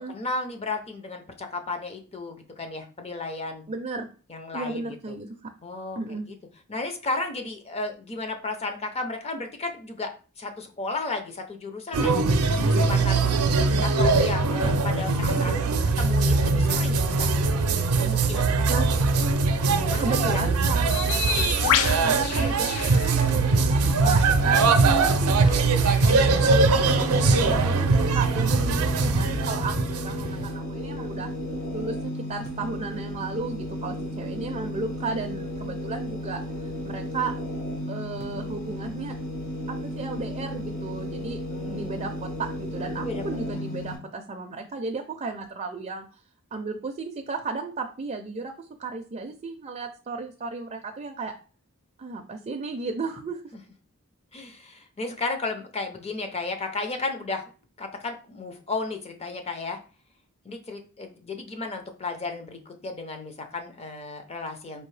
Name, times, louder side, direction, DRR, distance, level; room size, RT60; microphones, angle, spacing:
voice 1, 0.0-3.6 4.3-5.2 5.6-6.2 6.7-10.1 10.4-13.2 13.8-15.5 16.0-17.3 18.0-19.1 19.7-21.2 41.5-42.1 43.0-43.2 43.5-43.6 53.5-53.6 54.3-57.5 57.8-59.8 60.4-64.9, left 3 dB, 30° left, 6 dB, 0.6 m, -34 dB
voice 2, 3.7-4.1 4.5-5.3 6.0-6.3 18.7-18.9 20.0-20.9 21.6-24.6 24.8-31.3 31.7-37.3 37.9-39.2 39.7-46.1 46.5-51.3 52.0-53.4, right 3 dB, 30° right, 3 dB, 0.4 m, -34 dB
sound 1, 11.9-30.5, right 3 dB, 90° right, 0.5 m, -22 dB
Bird, 20.9-27.3, left 11 dB, 85° left, 0.3 m, -32 dB
sound 2, 26.7-44.0, equal, 60° left, 1.4 m, -34 dB
4.5 x 2.6 x 3.2 m, 0.36 s
head